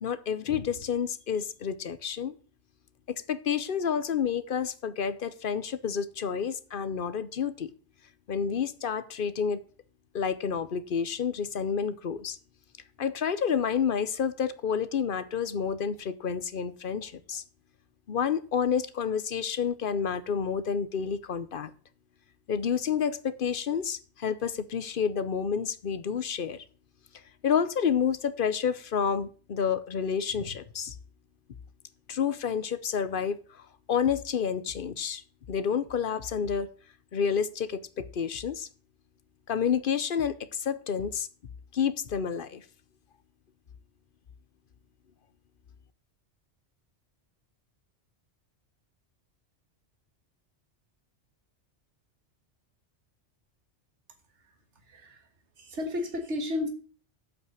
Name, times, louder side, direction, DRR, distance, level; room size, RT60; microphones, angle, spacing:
voice 1, 0.0-2.4 3.1-7.7 8.3-9.6 10.1-12.4 13.0-17.4 18.1-21.7 22.5-26.6 27.1-30.9 32.1-33.6 33.9-35.2 35.5-36.7 37.1-38.7 39.5-41.3 41.7-42.6, left 7 dB, 55° left, 0.9 m, -29 dB
voice 2, 54.9-55.3 55.6-56.7, left 2 dB, 80° right, 1.9 m, -32 dB
8.1 x 5.8 x 7.8 m
omnidirectional pair, 1.2 m